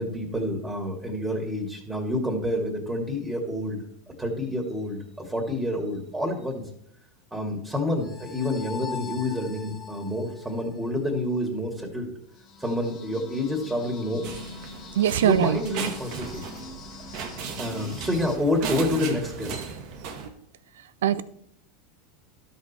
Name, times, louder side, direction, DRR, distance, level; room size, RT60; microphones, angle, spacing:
voice 1, 0.0-3.8 4.1-6.6 7.3-12.1 12.6-14.2 15.2-16.4 17.6-19.6, left 1 dB, 10° right, 2 dB, 2.2 m, -28 dB
sound 1, 8.0-11.1 12.3-18.4, left 5 dB, 45° left, 2.0 m, -43 dB
sound 2, 14.2-20.3, right 6 dB, 60° right, 1.6 m, -36 dB
voice 2, 15.0-15.6 21.0-21.2, right 10 dB, 85° right, 16 dB, 0.6 m, -21 dB
12.5 x 5.6 x 4.2 m, 0.69 s
hypercardioid pair, 105°, 0 cm